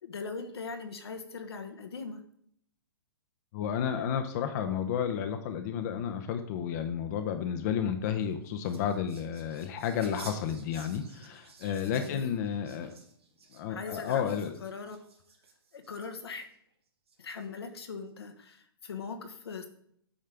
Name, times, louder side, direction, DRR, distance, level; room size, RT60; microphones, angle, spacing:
voice 1, 0.0-2.2 11.9-12.4 13.7-14.3 14.6-15.0 15.7-16.5 17.2-19.7, left 4 dB, 80° left, 6 dB, 1.2 m, -40 dB
voice 2, 3.5-12.9 13.5-14.6, left 8 dB, 45° left, 6 dB, 0.7 m, -32 dB
sound 1, 8.1-16.5 17.1-17.7, right 5 dB, 85° right, 1.8 m, -54 dB
8.8 x 5.5 x 3.5 m, 0.67 s
hypercardioid pair, 135°, 13 cm